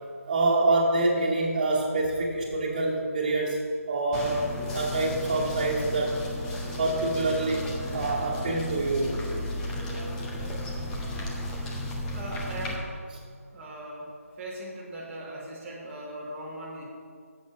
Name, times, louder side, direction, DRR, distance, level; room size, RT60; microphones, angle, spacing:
voice 1, 0.3-4.5 4.7-6.2 6.8-7.7 7.9-9.2, right 2 dB, 30° right, -4 dB, 2.1 m, -26 dB
sound 1, 4.1-12.8, left 1 dB, 10° left, 0.6 m, -34 dB
voice 2, 12.1-13.0 13.5-14.1 14.4-16.8, right 1 dB, 10° right, -7 dB, 1.7 m, -39 dB
10.5 x 7.7 x 5.1 m, 2.1 s
figure-of-eight pair, 165°, 8 cm